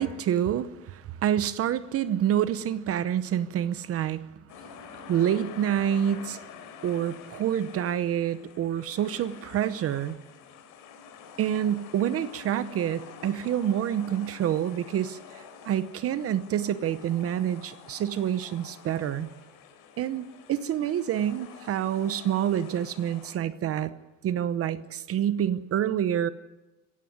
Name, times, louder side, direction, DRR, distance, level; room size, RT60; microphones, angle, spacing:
voice 1, 0.0-4.2 5.1-6.4 6.8-10.2 11.4-19.3 20.0-23.9 24.2-26.3, right 10 dB, 45° right, 14 dB, 0.8 m, -27 dB
sound 1, 4.5-23.3, left 7 dB, 90° left, 4.1 m, -48 dB
17.5 x 16.0 x 9.5 m, 1.1 s
cardioid pair, 155°, 31 cm